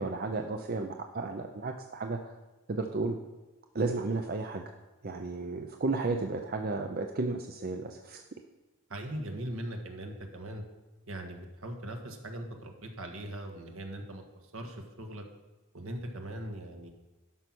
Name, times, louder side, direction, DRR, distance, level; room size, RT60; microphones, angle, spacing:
voice 1, 0.0-2.3 2.7-3.2 3.7-4.6 5.0-8.2, right 3 dB, 45° right, 4 dB, 0.6 m, -33 dB
voice 2, 8.9-10.6 11.1-14.2 14.5-15.2 15.7-16.9, right 1 dB, 70° right, 4 dB, 1.5 m, -40 dB
11.5 x 5.6 x 6.1 m, 1.1 s
head